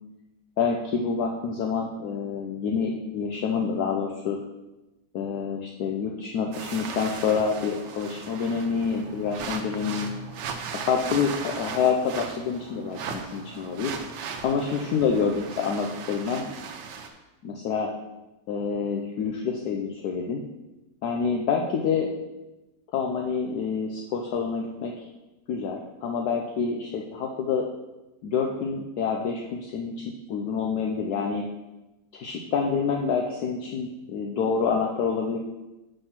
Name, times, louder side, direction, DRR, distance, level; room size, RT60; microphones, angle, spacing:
voice 1, 0.6-4.4 5.1-10.1 10.8-13.9 14.4-16.5 17.4-17.9 18.5-20.4 21.0-22.1 22.9-24.9 25.5-27.7 28.2-29.9 30.3-31.4 32.1-35.4, left 6 dB, 70° left, 1 dB, 1.1 m, -27 dB
sound 1, 6.5-17.1, right 6 dB, 85° right, 1.4 m, -37 dB
5.7 x 5.3 x 5.8 m, 1.0 s
omnidirectional pair, 1.8 m